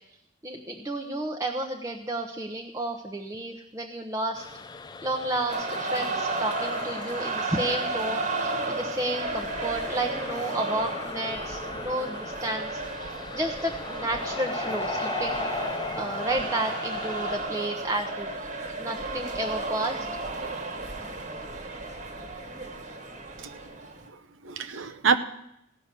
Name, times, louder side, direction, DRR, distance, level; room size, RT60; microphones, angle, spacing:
voice 1, 0.4-4.4 5.0-15.5 16.0-18.3 18.8-20.1, right 1 dB, 15° right, 0.8 m, -31 dB
sound 1, 4.3-17.4, left 4 dB, 20° left, 0.4 m, -38 dB
sound 2, 5.5-24.0, right 2 dB, 40° right, 1.5 m, -33 dB
voice 2, 23.4-23.9 24.1-25.2, right 5 dB, 85° right, 0.8 m, -28 dB
16.5 x 5.7 x 8.2 m
head